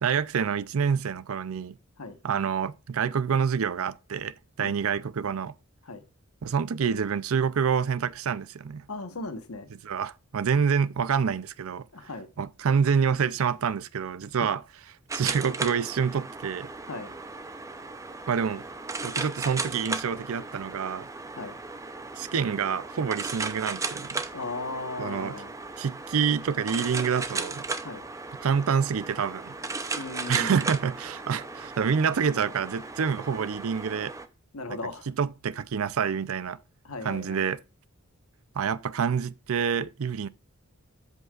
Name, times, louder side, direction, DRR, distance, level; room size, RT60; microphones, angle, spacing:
voice 1, 0.0-1.8 2.2-5.5 6.4-8.9 9.8-11.8 12.4-14.6 15.1-16.7 18.3-18.6 19.0-21.1 22.2-24.2 25.0-25.3 25.8-27.6 28.4-29.6 30.3-34.1 34.7-34.8 35.1-36.6 37.0-37.6 38.6-40.3, right 6 dB, 75° right, 0.5 m, -27 dB
voice 2, 8.9-9.7 11.9-12.3 14.4-14.6 16.8-17.1 21.4-21.6 24.3-25.5 27.8-28.0 29.9-30.6 34.5-35.1 36.8-37.5, left 3 dB, 90° left, 1.2 m, -37 dB
sound 1, 15.1-34.3, right 3 dB, 15° right, 0.5 m, -36 dB
14.0 x 5.4 x 2.4 m
head